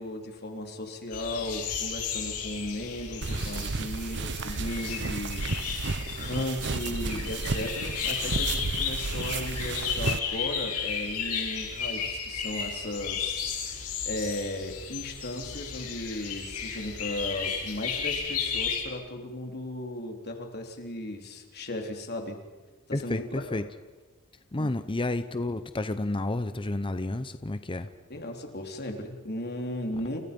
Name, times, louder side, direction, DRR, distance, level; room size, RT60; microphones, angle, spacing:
voice 1, 0.0-5.4 5.7-5.8 6.2-22.4 23.0-23.6 24.6-24.7 28.1-30.2, left 1 dB, 45° left, 3 dB, 3.7 m, -36 dB
sound 1, 1.1-18.8, left 6 dB, 85° left, 6.4 m, -34 dB
sound 2, 3.2-10.2, right 3 dB, 55° right, 0.9 m, -32 dB
voice 2, 22.9-23.7 24.5-27.9, left 2 dB, 25° left, 11 dB, 0.8 m, -31 dB
29.5 x 28.0 x 5.4 m, 1.3 s
head